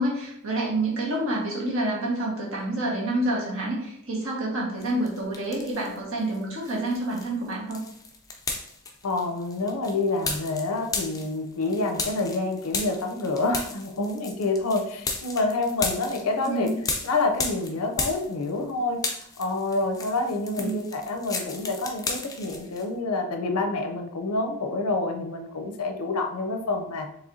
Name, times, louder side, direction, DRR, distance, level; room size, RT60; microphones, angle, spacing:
voice 1, 0.0-7.8 16.4-16.7 20.6-20.8, right 1 dB, 65° right, -4 dB, 1.5 m, -28 dB
sound 1, 4.8-6.0 6.3-18.7 18.9-22.8, left 3 dB, 15° left, 0.4 m, -34 dB
voice 2, 9.0-16.7 17.0-19.0 19.4-27.1, left 2 dB, 90° left, 4 dB, 0.7 m, -27 dB
4.8 x 3.3 x 2.7 m, 0.74 s
head